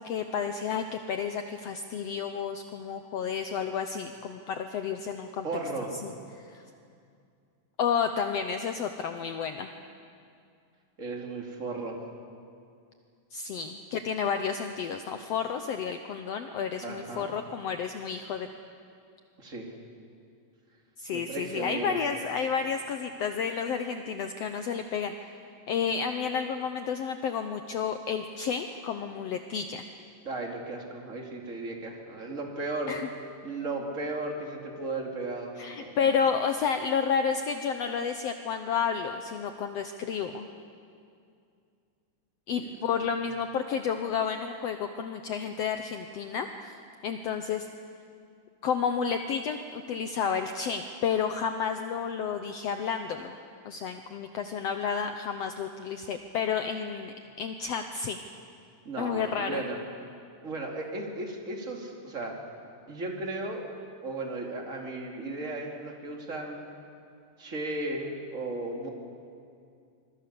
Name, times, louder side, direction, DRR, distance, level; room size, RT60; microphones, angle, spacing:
voice 1, 0.0-5.5 6.0-6.6 7.8-9.7 13.3-18.5 21.0-25.3 25.7-29.8 32.9-33.1 35.6-40.5 42.5-46.7 47.0-47.7 48.6-53.4 53.6-58.2 59.0-59.6, left 6 dB, 80° left, 7 dB, 1.4 m, -31 dB
voice 2, 5.4-6.0 11.0-12.0 16.8-17.3 19.4-19.7 21.1-22.0 30.2-33.0 33.4-35.9 42.6-42.7 58.8-59.8 60.4-62.4 62.9-63.7 64.0-66.6 67.4-68.9, right 2 dB, 25° right, 1 dB, 2.5 m, -35 dB
26.0 x 22.0 x 6.9 m, 2.4 s
omnidirectional pair, 3.9 m